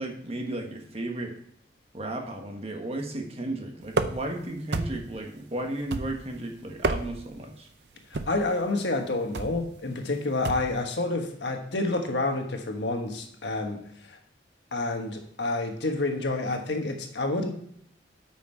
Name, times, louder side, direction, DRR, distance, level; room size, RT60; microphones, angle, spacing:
voice 1, 0.0-1.3 1.9-7.7, right 1 dB, 35° right, 3 dB, 1.4 m, -34 dB
sound 1, 3.9-4.4 4.7-5.2 5.9-6.4 6.7-7.3 8.1-8.5 9.3-9.6 10.4-10.8, right 3 dB, 75° right, 0.6 m, -30 dB
voice 2, 8.1-14.2 14.7-17.5, left 2 dB, 80° left, 4 dB, 1.4 m, -29 dB
8.7 x 6.3 x 4.6 m, 0.68 s
head